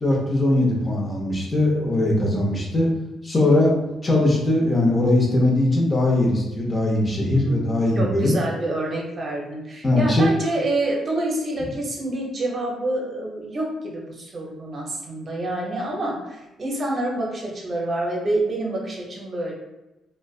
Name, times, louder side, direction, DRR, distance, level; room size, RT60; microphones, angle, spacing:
voice 1, 0.0-2.9 3.2-3.7 4.0-8.3 9.8-10.3, left 1 dB, 30° left, -2 dB, 0.7 m, -20 dB
voice 2, 7.3-19.5, right 1 dB, 40° right, -2 dB, 0.7 m, -27 dB
2.4 x 2.2 x 2.3 m, 0.98 s
cardioid pair, 90°, 0 cm